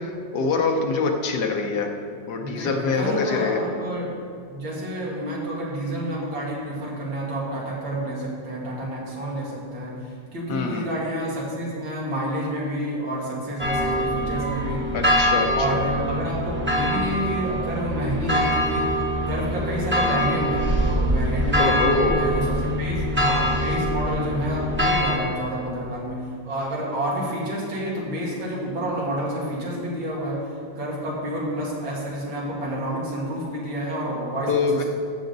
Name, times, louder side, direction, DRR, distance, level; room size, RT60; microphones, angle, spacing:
voice 1, 0.0-1.9 2.3-3.6 10.5-10.9 14.9-15.8 21.6-22.2 34.5-34.8, left 4 dB, 65° left, 4 dB, 1.3 m, -24 dB
voice 2, 2.4-4.1 4.5-14.9 15.5-21.8 22.1-34.8, right 1 dB, 85° right, -5 dB, 3.1 m, -29 dB
sound 1, 13.6-25.2, equal, 10° right, 0.9 m, -24 dB
14.0 x 7.1 x 4.0 m, 2.3 s
omnidirectional pair, 2.1 m